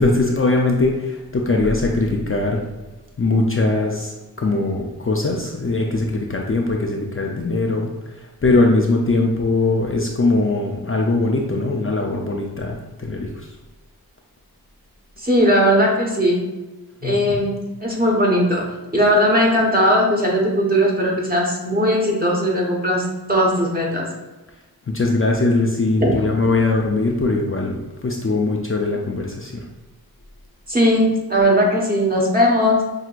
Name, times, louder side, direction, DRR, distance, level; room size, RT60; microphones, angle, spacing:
voice 1, 0.0-2.6 3.2-13.5 17.0-17.5 24.9-29.7, left 2 dB, 35° left, 0 dB, 0.5 m, -21 dB
voice 2, 15.2-16.4 17.0-17.5 17.8-18.7 18.9-24.0 26.0-26.2 30.7-32.8, equal, 25° right, -2 dB, 1.2 m, -18 dB
5.9 x 2.8 x 2.4 m, 1.1 s
wide cardioid pair, 55°, 38 cm